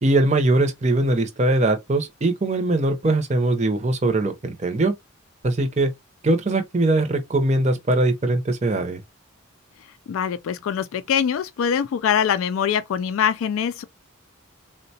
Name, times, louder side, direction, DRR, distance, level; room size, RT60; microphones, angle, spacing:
voice 1, 0.0-4.9 5.4-5.9 6.2-9.0, right 2 dB, 35° right, 0.6 m, -21 dB
voice 2, 10.1-13.8, left 8 dB, 80° left, 0.3 m, -23 dB
3.8 x 2.2 x 2.7 m
head